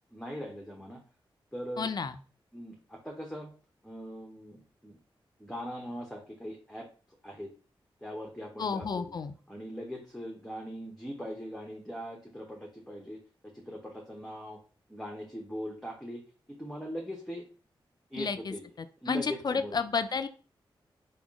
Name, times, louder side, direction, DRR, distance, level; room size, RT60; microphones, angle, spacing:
voice 1, 0.1-1.0 1.5-1.9 2.5-3.5 3.8-5.0 5.4-6.9 7.2-7.5 8.0-9.1 9.5-13.2 13.5-14.6 14.9-16.2 16.5-17.4 18.1-18.7 19.0-19.8, equal, 5° left, 0 dB, 0.7 m, -40 dB
voice 2, 1.8-2.1 8.6-9.3 18.1-20.3, left 5 dB, 50° left, 10 dB, 0.4 m, -32 dB
3.6 x 2.2 x 3.5 m, 0.39 s
cardioid pair, 65°, 9 cm